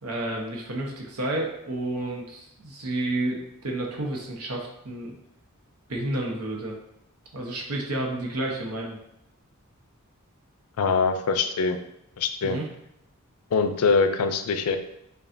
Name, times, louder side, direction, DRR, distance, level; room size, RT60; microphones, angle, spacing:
voice 1, 0.0-5.1 5.9-6.7 7.3-9.0 12.4-12.7, right 1 dB, 80° right, 0 dB, 0.9 m, -30 dB
voice 2, 10.8-11.8 12.2-12.6 13.5-14.8, left 4 dB, 75° left, 8 dB, 0.4 m, -23 dB
5.2 x 2.3 x 2.6 m, 0.81 s
head